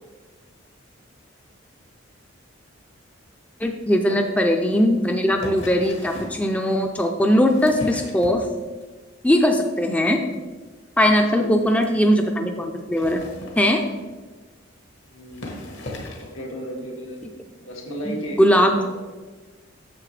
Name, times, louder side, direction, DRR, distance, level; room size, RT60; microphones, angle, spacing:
voice 1, 3.6-8.5 9.2-10.2 11.0-13.2 13.6-13.8 18.1-18.8, equal, 5° left, 4 dB, 0.4 m, -20 dB
sound 1, 5.3-6.4 7.2-8.8 9.2-9.6 9.9-10.1 10.3-10.4 10.6-10.7 11.1-11.2 11.7-11.8 12.8-14.1 14.9-15.0 15.3-16.4 17.2-17.3, left 1 dB, 65° left, 1.4 m, -37 dB
voice 2, 11.2-11.8 15.0-15.6 16.2-17.2 17.7-18.4 18.7-18.8, equal, 85° left, -1 dB, 1.8 m, -34 dB
8.6 x 6.7 x 3.2 m, 1.3 s
head